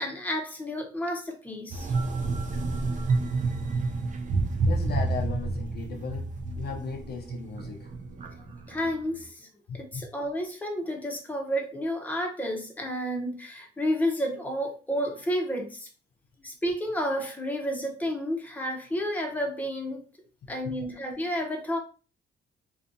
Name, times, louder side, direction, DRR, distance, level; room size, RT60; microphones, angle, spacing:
voice 1, 0.0-1.9 8.3-9.5 9.7-15.9 16.4-20.0 20.5-21.8, equal, 10° left, 0.7 m, -31 dB
sound 1, 1.7-9.2, right 3 dB, 40° right, 0.5 m, -29 dB
voice 2, 4.6-7.9 8.5-8.6 9.7-10.0 20.4-20.7, left 5 dB, 55° left, 0.4 m, -37 dB
2.5 x 2.3 x 2.5 m
cardioid pair, 90°, 20 cm